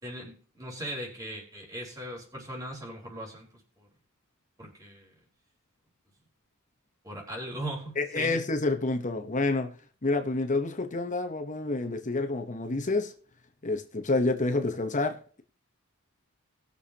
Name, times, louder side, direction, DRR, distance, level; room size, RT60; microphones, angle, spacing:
voice 1, 0.0-3.5 3.8-3.9 4.6-5.1 7.0-8.4, right 1 dB, 15° right, 4.1 m, -39 dB
voice 2, 8.0-9.7 10.0-13.1 13.6-15.4, left 2 dB, 35° left, 1.0 m, -28 dB
20.0 x 7.0 x 2.9 m
head